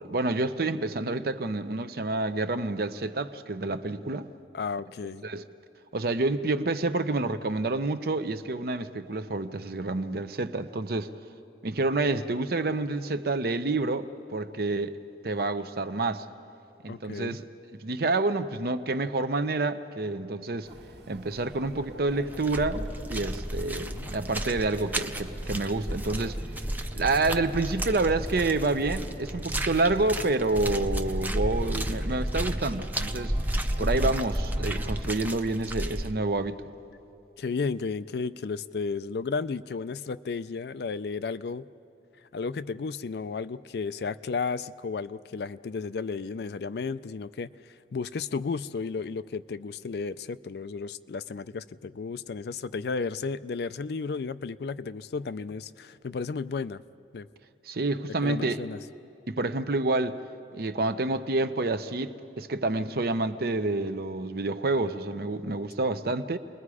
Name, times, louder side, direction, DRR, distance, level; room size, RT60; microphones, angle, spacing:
voice 1, 0.0-4.3 5.2-5.4 5.9-11.1 11.6-16.3 16.8-17.4 17.8-20.7 21.1-26.4 26.9-33.3 33.8-36.6 57.7-58.6 59.3-60.2 60.5-66.4, right 2 dB, 55° right, 0.7 m, -28 dB
voice 2, 4.5-5.2 16.9-17.4 23.7-24.1 33.8-34.1 37.4-41.7 42.3-56.8 57.1-57.3 58.2-58.8, left 4 dB, 60° left, 0.4 m, -33 dB
sound 1, 20.6-35.0, right 1 dB, 75° right, 1.6 m, -45 dB
sound 2, 21.5-21.8 22.1-36.1, right 1 dB, 10° right, 0.6 m, -32 dB
29.5 x 21.0 x 4.9 m
head